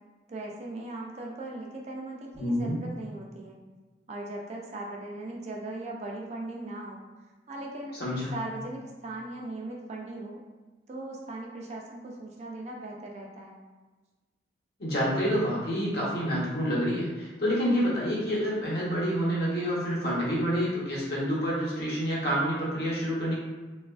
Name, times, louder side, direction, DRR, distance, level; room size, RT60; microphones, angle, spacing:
voice 1, 0.3-3.6 4.1-7.0 7.5-8.0 8.3-10.4 10.9-13.6, right 2 dB, 35° right, -1 dB, 0.3 m, -39 dB
voice 2, 2.3-2.8 8.0-8.3 14.8-23.3, equal, 55° left, -6 dB, 1.0 m, -28 dB
3.0 x 2.4 x 2.3 m, 1.2 s
head